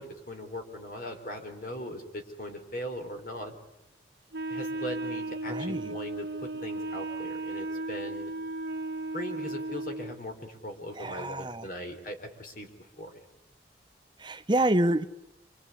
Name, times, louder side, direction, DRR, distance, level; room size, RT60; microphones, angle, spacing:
voice 1, 0.0-3.6 4.5-8.3 9.1-13.2, left 1 dB, 45° left, 3.9 m, -39 dB
Wind instrument woodwind instrument, 4.3-10.2, right 2 dB, 60° right, 1.5 m, -35 dB
voice 2, 5.5-6.0 10.9-11.7 14.2-15.0, right 1 dB, 25° right, 1.0 m, -27 dB
25.5 x 25.0 x 8.4 m
head